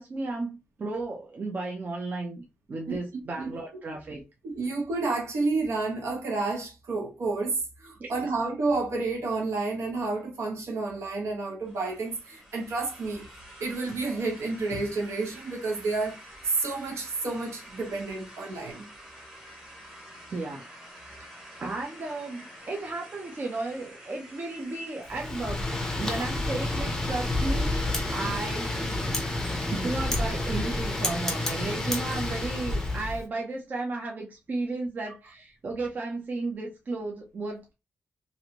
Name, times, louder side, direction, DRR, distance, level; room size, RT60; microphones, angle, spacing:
voice 1, 0.0-4.2 8.0-8.1 20.3-20.7 21.0-21.3 21.6-25.7 26.0-37.7, right 3 dB, 35° right, 0.6 m, -34 dB
voice 2, 4.4-13.3 13.6-16.2 16.4-18.9, right 3 dB, 70° right, 1.1 m, -30 dB
sound 1, 11.6-31.0, equal, 10° right, 1.0 m, -48 dB
Wind, 25.1-33.2, left 2 dB, 10° left, 0.6 m, -29 dB
3.1 x 2.5 x 2.8 m
wide cardioid pair, 175°, 5 cm